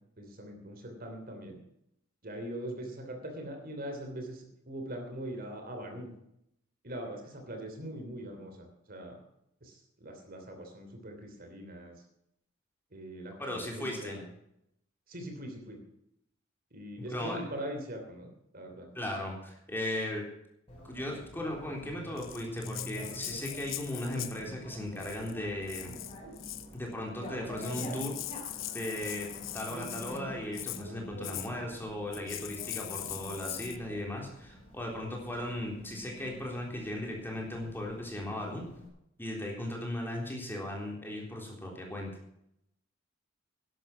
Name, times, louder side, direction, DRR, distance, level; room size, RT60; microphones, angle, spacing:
voice 1, 0.2-1.6 2.2-6.1 6.8-9.2 9.6-11.9 12.9-14.3 15.1-15.8 16.7-18.9, right 1 dB, 45° right, 4 dB, 3.1 m, -42 dB
voice 2, 13.4-14.2 17.0-17.4 18.9-20.2 20.8-26.0 26.7-28.2 28.7-29.3 29.5-38.6 39.2-42.1, left 1 dB, 10° left, -1 dB, 3.7 m, -37 dB
Bicycle, 20.7-38.9, equal, 30° left, 6.1 m, -47 dB
Rattle (instrument), 22.2-24.5 25.0-25.3 25.7-26.7 27.3-27.4 27.6-30.2 30.5-30.8 31.2-31.5 32.1-33.8, left 15 dB, 70° left, 0.8 m, -41 dB
11.5 x 11.5 x 5.9 m, 0.77 s
head